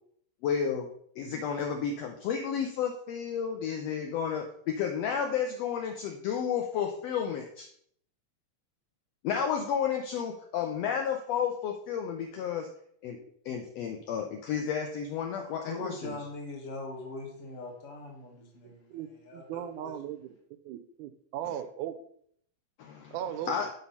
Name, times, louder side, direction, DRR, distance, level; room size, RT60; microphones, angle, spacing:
voice 1, 0.4-0.9 1.2-7.7 9.2-12.7 13.0-13.2 13.4-16.2 22.8-23.2 23.5-23.7, left 7 dB, 75° left, 4 dB, 1.6 m, -32 dB
voice 2, 15.4-19.0 19.2-19.9, left 2 dB, 45° left, -1 dB, 0.9 m, -41 dB
voice 3, 18.6-20.3 20.6-21.9 23.1-23.5, right 10 dB, 90° right, 10 dB, 2.1 m, -38 dB
7.0 x 4.3 x 5.3 m, 0.65 s
omnidirectional pair, 3.4 m